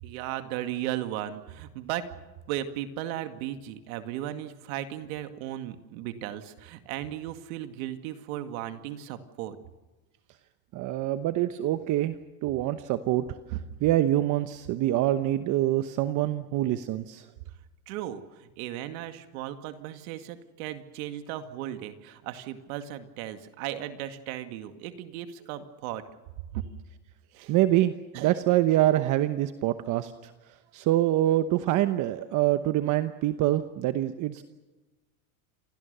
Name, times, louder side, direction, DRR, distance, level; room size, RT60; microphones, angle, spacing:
voice 1, 0.0-2.1 2.5-9.6 17.9-26.0 26.5-26.6 27.3-27.5 28.1-28.3, right 12 dB, 65° right, 8 dB, 2.2 m, -36 dB
voice 2, 10.7-12.2 12.4-17.3 27.5-30.3 30.7-34.4, right 14 dB, 40° right, 10 dB, 1.0 m, -25 dB
28.0 x 21.5 x 6.8 m, 1.2 s
supercardioid pair, 135°, 44 cm